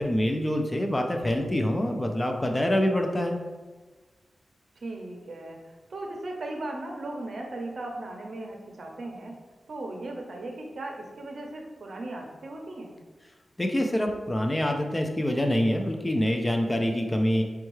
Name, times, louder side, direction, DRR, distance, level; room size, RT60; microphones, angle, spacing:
voice 1, 0.0-3.4 13.6-17.4, left 1 dB, 15° left, 3 dB, 0.3 m, -25 dB
voice 2, 4.8-9.4 9.7-12.9, right 2 dB, 60° right, 1 dB, 0.6 m, -37 dB
5.3 x 2.3 x 3.0 m, 1.3 s
wide cardioid pair, 125°, 0 cm